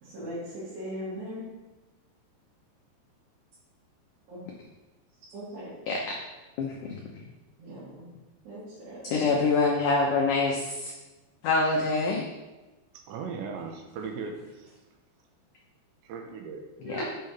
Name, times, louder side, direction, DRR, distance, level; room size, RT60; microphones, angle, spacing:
voice 1, 0.0-1.5 4.3-4.4 5.3-5.7 7.6-8.1 8.5-9.2 16.8-17.0, equal, 70° right, -12 dB, 5.2 m, -39 dB
voice 2, 6.6-7.0 9.1-10.9 11.4-12.3 16.8-17.0, left 3 dB, 90° left, -1 dB, 1.8 m, -25 dB
voice 3, 12.9-14.7 16.0-16.6, right 5 dB, 85° right, 3 dB, 3.3 m, -38 dB
9.1 x 5.7 x 5.4 m, 1.1 s
omnidirectional pair, 5.1 m